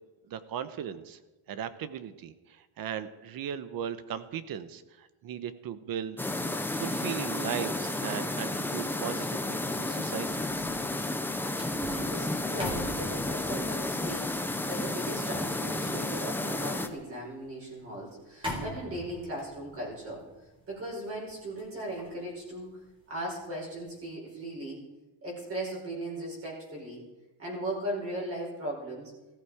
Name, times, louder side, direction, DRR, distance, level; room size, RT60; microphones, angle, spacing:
voice 1, 0.3-1.2 1.5-6.2 6.7-10.5, right 9 dB, 45° right, 13 dB, 1.1 m, -37 dB
sound 1, 6.2-16.9, left 2 dB, 5° left, 0.7 m, -32 dB
sound 2, 10.2-23.3 23.7-24.0, equal, 10° right, 3.9 m, -44 dB
voice 2, 11.7-20.3 20.7-22.8 23.1-24.8 25.2-27.1 27.4-29.1, right 1 dB, 30° right, -4 dB, 5.3 m, -38 dB
18.5 x 15.0 x 5.0 m, 1.1 s
cardioid pair, 170°, 47 cm